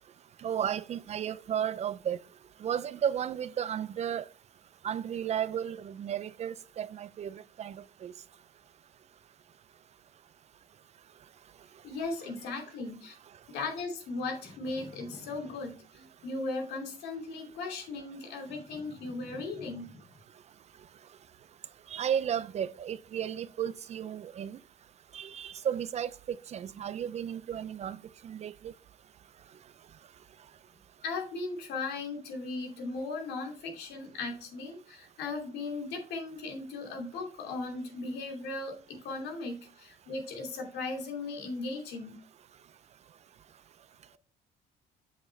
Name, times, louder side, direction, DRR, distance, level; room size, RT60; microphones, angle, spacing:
voice 1, 0.4-2.2 2.6-4.3 4.8-8.1 21.9-24.6 25.1-28.7, right 9 dB, 40° right, 0.4 m, -34 dB
voice 2, 11.8-13.1 13.5-20.0 31.0-42.2, left 3 dB, 80° left, 2.6 m, -37 dB
7.3 x 6.2 x 3.2 m
cardioid pair, 110°, 17 cm